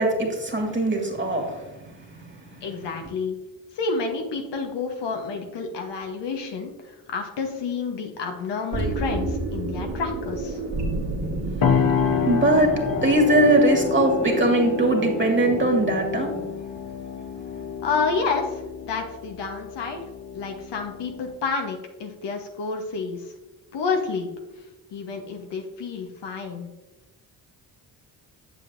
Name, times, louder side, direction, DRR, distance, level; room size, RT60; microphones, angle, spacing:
voice 1, 0.0-1.7 12.0-12.7 13.0-16.3, right 1 dB, 25° right, 1 dB, 2.2 m, -21 dB
voice 2, 2.6-3.4 3.7-10.6 17.8-20.0 20.3-23.3 23.7-26.7, left 4 dB, 70° left, 3 dB, 1.2 m, -29 dB
sound 1, 5.0-5.6 6.1-6.2 8.7-16.5, right 2 dB, 65° right, 1.9 m, -31 dB
sound 2, 11.6-21.3, left 7 dB, 50° left, 1.0 m, -28 dB
8.1 x 7.0 x 2.7 m, 1.1 s
supercardioid pair, 50°, 44 cm